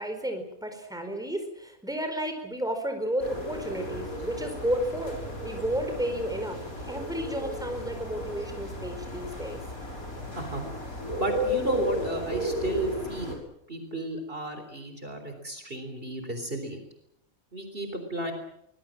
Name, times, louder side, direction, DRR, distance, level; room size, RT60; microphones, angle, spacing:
voice 1, 0.0-9.6, equal, 5° right, 6 dB, 4.6 m, -32 dB
sound 1, 3.2-13.3, equal, 90° left, 6.3 m, -34 dB
voice 2, 10.3-10.9 11.2-13.4 13.7-16.8 17.5-18.3, right 1 dB, 40° right, 6 dB, 4.1 m, -33 dB
24.5 x 21.0 x 7.6 m, 0.76 s
omnidirectional pair, 1.5 m